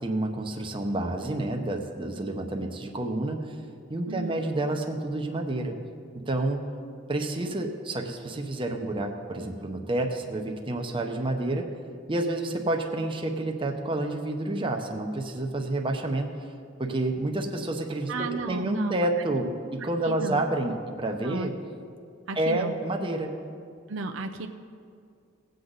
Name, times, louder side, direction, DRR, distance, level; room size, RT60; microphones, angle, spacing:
voice 1, 0.0-3.6 3.9-5.8 6.1-6.6 7.1-11.7 12.1-16.3 16.8-21.5 22.4-23.3, right 2 dB, 25° right, 3 dB, 0.8 m, -29 dB
voice 2, 4.1-4.4 18.1-19.0 19.4-19.6 20.0-20.4 21.2-21.5 22.3-22.7 23.9-24.5, right 4 dB, 70° right, 5 dB, 0.6 m, -34 dB
18.0 x 7.9 x 4.0 m, 2.3 s
head